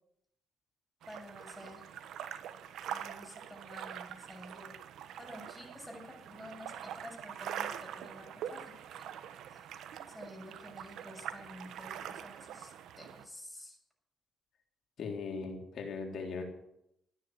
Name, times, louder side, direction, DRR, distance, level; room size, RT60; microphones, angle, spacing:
sound 1, 1.0-13.2, right 9 dB, 80° right, 1.1 m, -44 dB
voice 1, 1.1-1.8 2.9-4.8 5.2-9.1 9.5-9.6 10.1-13.8, left 1 dB, 5° left, -1 dB, 6.8 m, -50 dB
voice 2, 15.0-16.4, left 4 dB, 65° left, 2 dB, 3.6 m, -39 dB
14.0 x 9.7 x 8.2 m, 0.79 s
cardioid pair, 90°, 0 cm